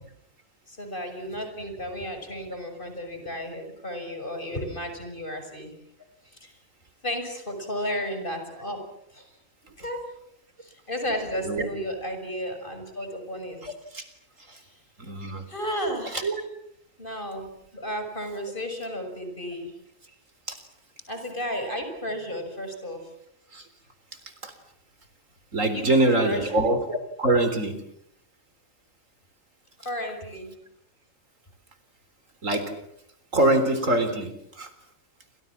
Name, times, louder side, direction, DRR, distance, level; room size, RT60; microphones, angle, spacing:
voice 1, 0.7-5.7 6.3-6.5 7.0-8.8 9.1-9.3 9.8-10.0 10.6-13.6 14.5-14.8 15.5-16.3 17.0-19.7 21.1-23.1 25.7-26.6 29.8-30.6, equal, 40° left, 7 dB, 6.5 m, -33 dB
voice 2, 13.6-14.1 14.5-14.6 15.0-15.5 16.1-16.4 20.5-20.6 23.5-23.7 24.4-24.5 25.5-27.8 32.4-32.8 33.3-34.7, right 1 dB, 75° right, 10 dB, 4.3 m, -24 dB
30.0 x 26.0 x 7.4 m, 0.72 s
omnidirectional pair, 1.3 m